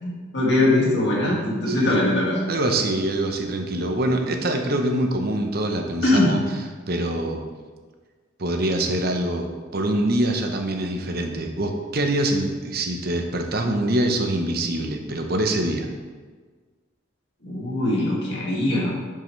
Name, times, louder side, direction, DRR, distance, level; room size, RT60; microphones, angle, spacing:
voice 1, 0.0-2.4 6.0-6.3 17.4-18.9, left 1 dB, 55° left, -4 dB, 2.1 m, -21 dB
voice 2, 2.5-6.4 6.9-7.4 8.4-15.9, right 1 dB, 50° right, 4 dB, 0.9 m, -24 dB
10.5 x 5.6 x 3.3 m, 1.4 s
head